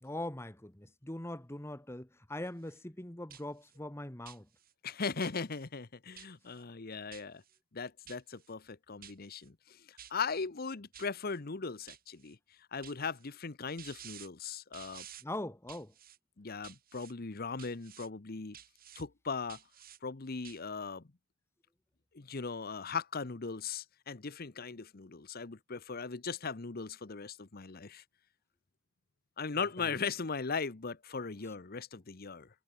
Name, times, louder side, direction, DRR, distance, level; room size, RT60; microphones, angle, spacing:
voice 1, 0.0-4.5 15.2-15.9 29.8-30.0, left 1 dB, 15° left, 1.4 m, -42 dB
sound 1, 2.5-2.8 3.3-3.8 4.2-4.7 5.2-5.7 6.2-6.6 7.1-7.6 8.1-8.5 9.0-9.5 10.0-10.4 10.9-11.4 11.9-12.3 12.8-13.3 13.8-14.3 14.7-15.2 15.7-16.2 16.6-17.1 17.6-18.1 18.5-19.0 19.5-20.0 20.4-20.6, right 10 dB, 45° right, 5.7 m, -52 dB
voice 2, 4.8-7.4 7.7-12.4 12.7-15.1 16.4-18.6 19.0-19.6 20.0-21.0 22.1-28.0 29.4-32.5, left 5 dB, 50° left, 0.9 m, -38 dB
head